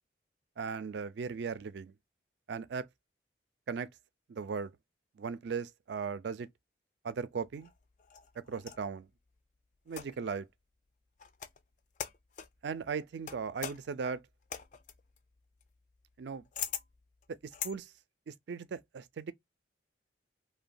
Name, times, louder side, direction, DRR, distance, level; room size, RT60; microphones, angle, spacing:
voice 1, 0.6-1.9 2.5-2.9 3.7-3.9 4.3-4.7 5.2-6.5 7.0-7.7 8.5-9.1 9.9-10.5 12.6-14.2 16.2-16.4 17.6-17.9 18.3-19.3, right 5 dB, 65° right, 0.4 m, -37 dB
sound 1, 7.5-8.9 9.9-10.4 11.2-11.6 11.9-12.6 13.3-17.8, left 8 dB, 40° left, 0.3 m, -42 dB
2.9 x 2.2 x 2.5 m
head